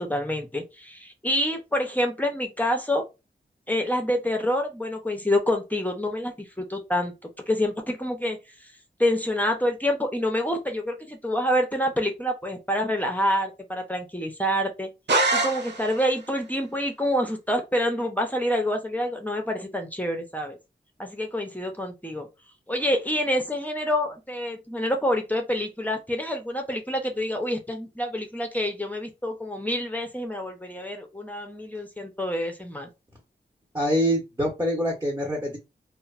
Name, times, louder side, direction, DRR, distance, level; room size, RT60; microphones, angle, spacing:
voice 1, 0.0-3.0 3.7-7.1 7.5-8.7 9.0-14.9 15.3-20.6 21.0-22.3 22.7-32.9, left 1 dB, 10° left, 0.6 m, -27 dB
sound 1, 15.1-16.2, right 2 dB, 70° right, 0.7 m, -24 dB
voice 2, 33.7-35.6, equal, 20° right, 0.8 m, -25 dB
2.9 x 2.0 x 2.3 m
wide cardioid pair, 75°, 18 cm